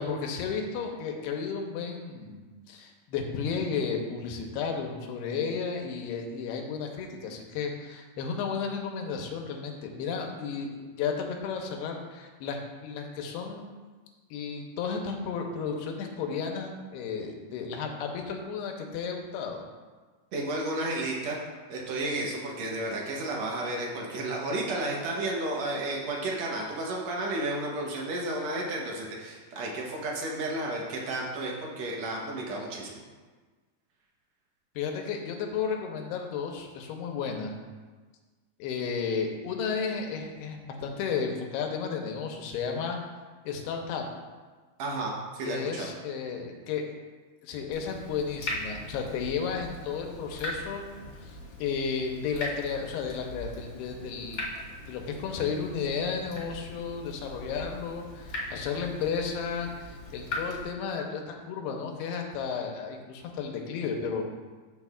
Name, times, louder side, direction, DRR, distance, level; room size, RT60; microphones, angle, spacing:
voice 1, 0.0-2.4 2.7-13.7 14.3-19.6 34.8-37.5 38.6-43.0 43.4-44.0 45.5-46.8 47.4-50.8 51.2-54.5 54.9-64.3, left 6 dB, 85° left, 2 dB, 2.9 m, -33 dB
voice 2, 20.3-21.4 21.7-33.0 44.8-45.9, right 2 dB, 75° right, -2 dB, 1.6 m, -32 dB
Water tap faucet / Drip, 47.7-60.6, left 1 dB, 40° left, 2.6 m, -40 dB
13.0 x 6.3 x 2.4 m, 1.4 s
omnidirectional pair, 4.6 m